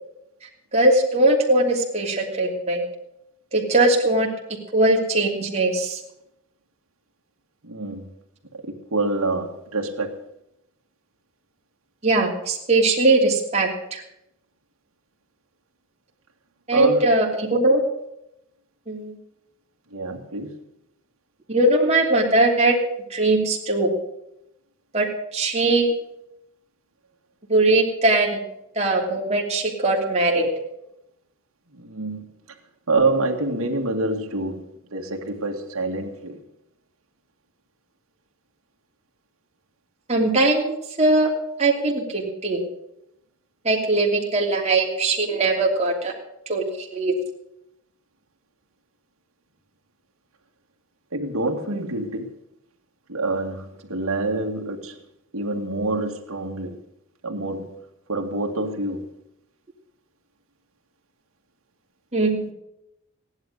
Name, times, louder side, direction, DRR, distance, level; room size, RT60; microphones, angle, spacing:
voice 1, 0.7-2.8 3.5-4.3 4.7-6.0 12.0-14.0 16.7-17.8 18.9-19.1 21.5-22.7 23.1-23.9 24.9-25.1 25.3-25.9 27.5-28.4 28.7-30.5 40.1-41.3 41.6-42.7 43.6-46.1 46.5-47.2 62.1-62.5, right 2 dB, 30° right, -1 dB, 3.0 m, -20 dB
voice 2, 7.6-8.1 8.6-10.2 16.7-17.0 19.9-20.5 31.7-32.3 32.9-34.6 34.9-36.4 51.1-52.3 53.1-55.0 55.3-56.8 57.2-57.7 58.1-59.1, right 2 dB, 75° right, 1 dB, 2.1 m, -26 dB
16.5 x 11.0 x 6.6 m, 0.82 s
head